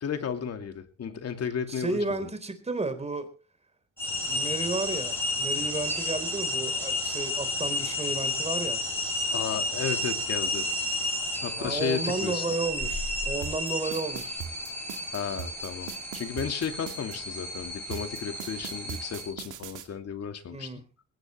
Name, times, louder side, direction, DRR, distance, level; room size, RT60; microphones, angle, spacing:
voice 1, 0.0-2.3 9.3-10.7 11.4-12.4 15.1-20.7, left 7 dB, 55° left, 2.6 m, -34 dB
voice 2, 1.7-3.3 4.1-8.8 11.6-14.4 20.5-20.8, right 3 dB, 20° right, 3.9 m, -32 dB
sound 1, 4.0-19.3, left 1 dB, 5° left, 5.9 m, -32 dB
sound 2, 13.4-17.2 17.9-19.9, right 9 dB, 80° right, 2.3 m, -39 dB
20.0 x 17.5 x 3.2 m
cardioid pair, 90°, 30 cm